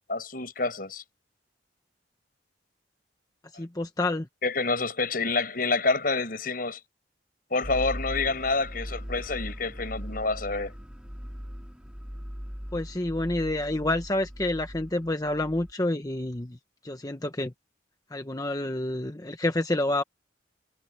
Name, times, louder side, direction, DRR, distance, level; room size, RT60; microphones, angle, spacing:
voice 1, 0.1-1.0 4.4-6.8 7.5-10.7, left 3 dB, 50° left, 6.1 m, -28 dB
voice 2, 3.5-4.3 12.7-16.6 16.8-17.5 18.1-20.0, left 1 dB, 20° left, 1.0 m, -28 dB
sound 1, 7.6-15.7, equal, 5° right, 3.6 m, -39 dB
head